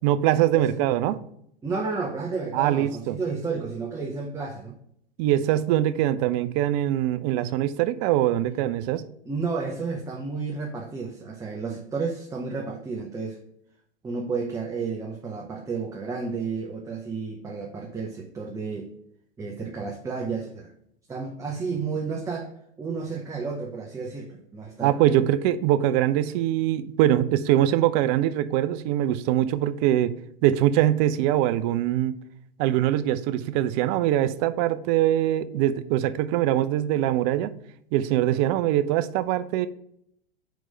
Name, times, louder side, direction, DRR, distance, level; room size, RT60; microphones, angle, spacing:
voice 1, 0.0-1.2 2.5-3.2 5.2-9.0 24.8-30.1 30.4-32.1 32.6-37.5 37.9-39.7, right 12 dB, 45° right, 0.6 m, -23 dB
voice 2, 1.6-4.8 9.2-13.4 14.0-18.9 19.4-20.7 21.1-22.5 22.8-25.0, right 4 dB, 10° right, 0.9 m, -31 dB
5.1 x 4.6 x 5.4 m
hypercardioid pair, 105°, 30 cm